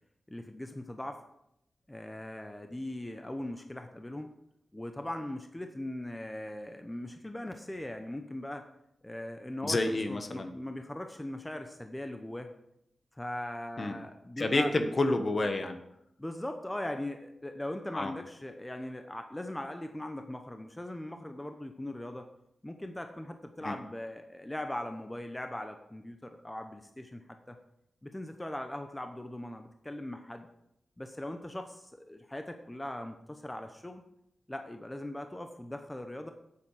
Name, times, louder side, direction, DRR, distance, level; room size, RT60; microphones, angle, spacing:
voice 1, 0.3-1.2 1.9-4.3 4.7-8.6 9.0-12.5 13.1-14.7 16.2-22.3 22.6-27.6 28.0-30.5 31.0-34.0 34.5-36.3, left 1 dB, 15° left, 6 dB, 0.9 m, -40 dB
voice 2, 9.6-10.5 13.8-13.9 14.4-15.8 17.9-18.1 23.6-23.7, left 2 dB, 45° left, 7 dB, 1.2 m, -29 dB
8.5 x 8.5 x 4.9 m, 0.79 s
cardioid pair, 70°, 0 cm